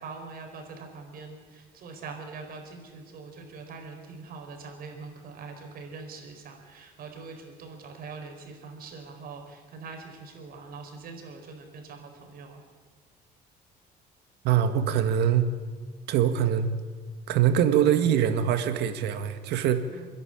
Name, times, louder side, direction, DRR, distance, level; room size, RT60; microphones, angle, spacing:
voice 1, 0.0-12.6 19.9-20.1, right 4 dB, 60° right, 3 dB, 4.7 m, -43 dB
voice 2, 14.4-15.5 16.1-16.7 17.3-19.9, right 9 dB, 80° right, 9 dB, 1.7 m, -23 dB
29.0 x 10.5 x 8.9 m, 1.5 s
cardioid pair, 110°, 17 cm